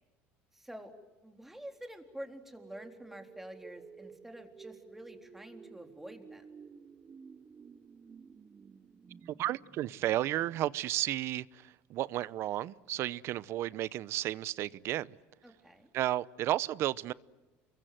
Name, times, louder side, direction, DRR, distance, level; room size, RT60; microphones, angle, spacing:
voice 1, 0.5-0.9 1.2-6.5 15.4-15.9, equal, 5° right, 3.8 m, -48 dB
sound 1, 2.3-11.2, right 6 dB, 30° right, 1.0 m, -54 dB
voice 2, 9.3-15.2 15.9-17.1, right 14 dB, 60° right, 0.8 m, -33 dB
28.5 x 23.0 x 7.7 m
supercardioid pair, 110°, 5 cm